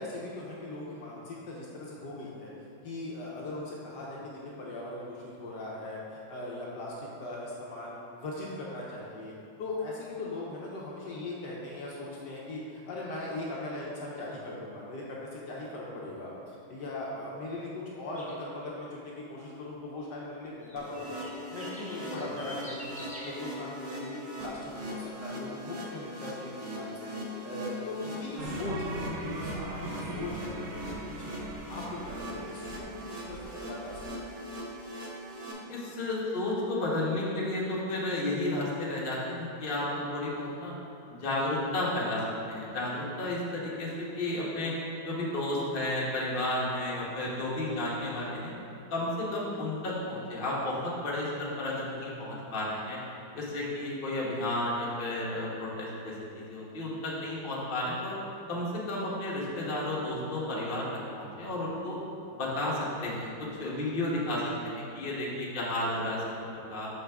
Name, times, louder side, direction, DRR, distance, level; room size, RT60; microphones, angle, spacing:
voice 1, 0.0-9.3 9.6-21.2 21.5-27.1 27.4-28.8 29.2-31.4 31.7-32.9 33.3-34.4, left 2 dB, 65° left, -5 dB, 1.3 m, -39 dB
sound 1, 18.1-18.4 20.6-23.3, equal, 5° left, 0.6 m, -46 dB
sound 2, 20.8-35.5, equal, 55° right, 0.9 m, -40 dB
sound 3, 28.4-34.1, right 2 dB, 90° right, 0.6 m, -40 dB
voice 2, 35.7-40.7 41.1-42.2 42.5-44.7 45.0-48.5 48.9-53.0 53.3-58.1 58.5-60.9 61.1-62.0 62.4-63.3 63.6-66.9, left 1 dB, 35° left, -6 dB, 1.0 m, -32 dB
6.5 x 5.3 x 3.5 m, 2.6 s
omnidirectional pair, 2.1 m